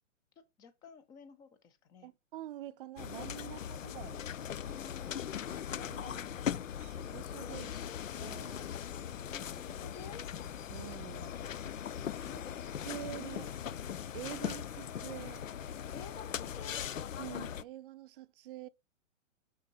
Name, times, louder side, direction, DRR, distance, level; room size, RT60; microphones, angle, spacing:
voice 1, 0.6-2.1 3.4-3.7 4.6-5.3 5.9-6.4 9.2-10.3 12.2-12.9 13.2-13.5 14.3-14.5 15.9-16.9, left 6 dB, 10° left, 0.4 m, -52 dB
voice 2, 2.0-4.3 5.8-6.2 6.6-7.8 8.2-8.7 10.7-11.4 12.8-13.5 14.1-15.4 17.2-18.7, right 13 dB, 45° right, 0.5 m, -46 dB
sound 1, 3.0-17.6, left 9 dB, 90° left, 0.5 m, -40 dB
Bird vocalization bird call bird song, 6.2-16.3, left 9 dB, 30° left, 0.8 m, -56 dB
6.1 x 5.7 x 4.0 m
figure-of-eight pair, 120°, 38 cm